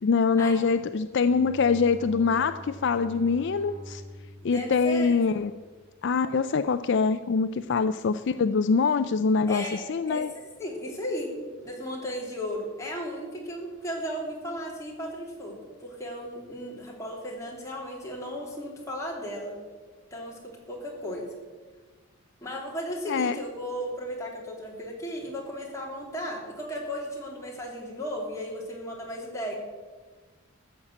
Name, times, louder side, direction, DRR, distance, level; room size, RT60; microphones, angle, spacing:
voice 1, 0.0-4.0 4.4-5.6 6.0-10.3 23.1-23.4, left 5 dB, 55° left, 11 dB, 0.4 m, -24 dB
Bowed string instrument, 0.8-6.0, equal, 35° right, 0.7 m, -46 dB
voice 2, 4.4-5.1 9.5-10.2 10.6-19.5 20.1-21.3 22.4-29.6, equal, 15° left, -3 dB, 3.0 m, -35 dB
14.0 x 7.2 x 8.5 m, 1.4 s
head